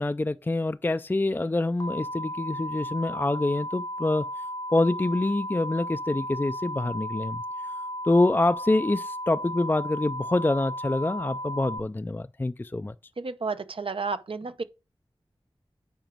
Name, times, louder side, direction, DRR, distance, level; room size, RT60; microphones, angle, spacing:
voice 1, 0.0-4.3 4.7-7.4 8.0-12.9, left 2 dB, 20° left, 0.3 m, -26 dB
sound 1, 1.8-11.8, equal, 45° left, 0.7 m, -35 dB
voice 2, 13.2-14.6, right 4 dB, 70° right, 0.7 m, -31 dB
9.1 x 5.0 x 4.5 m
wide cardioid pair, 65°, 9 cm